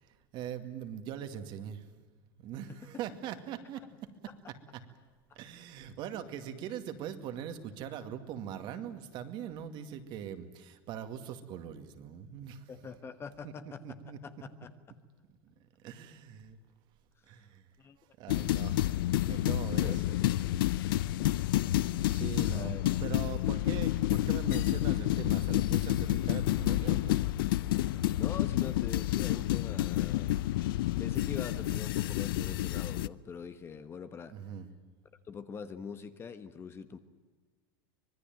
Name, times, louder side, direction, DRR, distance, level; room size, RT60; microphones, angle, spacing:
voice 1, 0.0-1.8 2.4-3.8 4.5-4.6 5.4-12.7 13.4-13.5 13.8-14.2 15.4-15.5 15.8-16.6 17.3-17.6 18.0-19.0 19.3-20.0 20.3-20.4 20.8-21.1 21.8-27.2 34.3-34.7, right 9 dB, 45° right, 8 dB, 2.3 m, -41 dB
voice 2, 12.7-13.8 14.2-14.7 17.8-18.0 18.3-18.4 19.8-20.2 22.5-22.8 28.2-30.3 31.0-34.3 35.2-37.0, left 6 dB, 20° left, 10 dB, 1.2 m, -43 dB
sound 1, 18.3-33.1, left 15 dB, 80° left, 0.7 m, -29 dB
25.0 x 20.5 x 9.2 m, 1.4 s
supercardioid pair, 145°, 12 cm